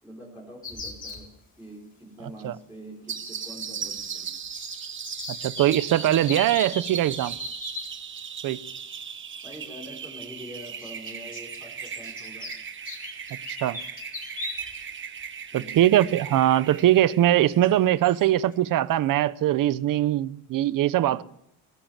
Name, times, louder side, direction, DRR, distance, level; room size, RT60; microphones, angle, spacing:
voice 1, 0.0-1.3 1.6-4.3 9.4-12.5 13.3-13.4 15.5-15.9, equal, 5° right, 5.1 m, -44 dB
sound 1, 0.6-1.2 3.1-4.2 4.4-7.9 9.3-9.4 10.6-14.9 15.2-15.3 16.8-16.9 17.5-17.7 18.0-18.3, left 3 dB, 25° left, 3.9 m, -39 dB
sound 2, 3.1-18.3, right 7 dB, 35° right, 1.3 m, -38 dB
voice 2, 5.3-7.4 8.4-8.6 13.5-13.8 15.5-21.2, right 13 dB, 65° right, 0.9 m, -22 dB
21.0 x 19.0 x 7.4 m
cardioid pair, 165°, 35 cm